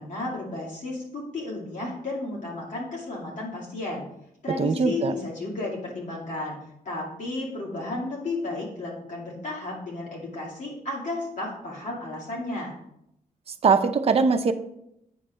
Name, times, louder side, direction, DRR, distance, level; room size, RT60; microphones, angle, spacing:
voice 1, 0.0-4.0 4.4-6.6 6.8-12.8, left 2 dB, 60° left, -5 dB, 2.3 m, -33 dB
voice 2, 4.6-5.1 13.6-14.5, right 5 dB, 45° right, 7 dB, 0.7 m, -21 dB
9.1 x 3.3 x 6.3 m, 0.78 s
cardioid pair, 105°, 14 cm